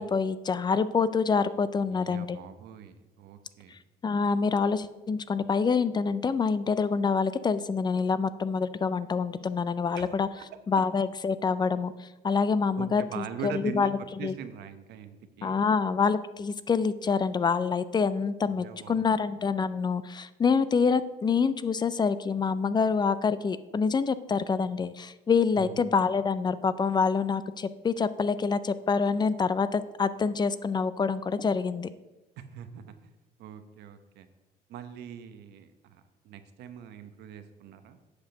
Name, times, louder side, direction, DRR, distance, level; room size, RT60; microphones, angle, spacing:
voice 1, 0.0-2.4 4.0-10.3 10.7-11.9 12.2-13.9 14.2-14.3 15.4-31.9, left 5 dB, 25° left, 15 dB, 0.4 m, -26 dB
voice 2, 1.8-3.7 9.9-10.4 12.8-15.6 18.4-19.2 25.5-25.8 32.4-33.1 33.4-34.3 34.7-38.0, right 8 dB, 80° right, 9 dB, 0.9 m, -42 dB
8.2 x 5.1 x 6.4 m, 1.1 s
cardioid pair, 110°, 17 cm